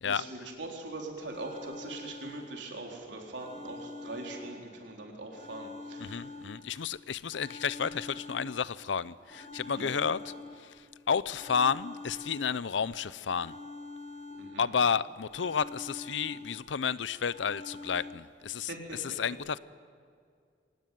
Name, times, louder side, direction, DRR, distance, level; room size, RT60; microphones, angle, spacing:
voice 1, 0.0-6.2 9.7-10.0 14.4-14.7 18.7-19.2, right 2 dB, 75° right, 4.0 m, -42 dB
sound 1, 1.3-2.9 3.3-4.9 5.3-6.9 7.3-8.9 9.3-10.9 11.3-12.9 13.3-14.9 15.3-16.9 17.3-18.1, left 3 dB, 35° left, 6.3 m, -46 dB
voice 2, 6.0-10.3 10.6-10.7 11.1-13.6 14.6-19.6, left 6 dB, 80° left, 0.6 m, -31 dB
24.0 x 18.0 x 9.4 m
head